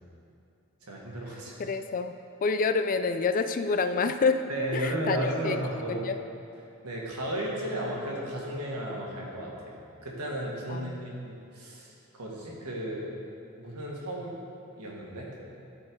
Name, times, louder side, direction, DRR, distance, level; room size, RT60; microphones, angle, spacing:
voice 1, 0.8-1.5 4.5-6.1 6.8-13.0 13.6-14.4 14.8-15.3, right 1 dB, 80° right, -3 dB, 1.7 m, -34 dB
voice 2, 1.6-2.1 2.4-4.4 4.7-5.6 5.9-6.2 10.7-11.2, left 4 dB, 40° left, 9 dB, 0.3 m, -28 dB
12.5 x 4.5 x 4.6 m, 2.6 s
head